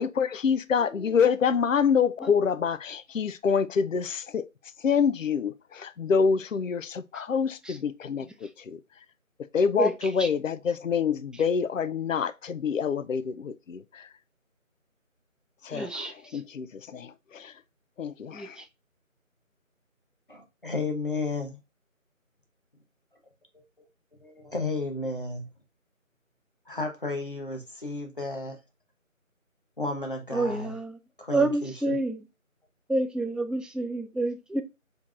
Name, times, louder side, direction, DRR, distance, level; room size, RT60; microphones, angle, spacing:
voice 1, 0.0-4.4 4.8-8.3 8.7-8.8 9.5-14.0 15.6-17.5 18.0-18.5, left 6 dB, 70° left, 0.5 m, -26 dB
voice 2, 9.8-10.3 15.7-16.1 18.3-18.5 30.3-31.0 31.3-32.2 32.9-34.6, right 2 dB, ahead, 0.3 m, -28 dB
voice 3, 20.3-21.6 23.5-23.6 24.2-25.5 26.7-28.6 29.8-30.8 31.2-32.0, left 2 dB, 40° left, 1.0 m, -33 dB
4.6 x 4.5 x 2.4 m
figure-of-eight pair, 180°, 41 cm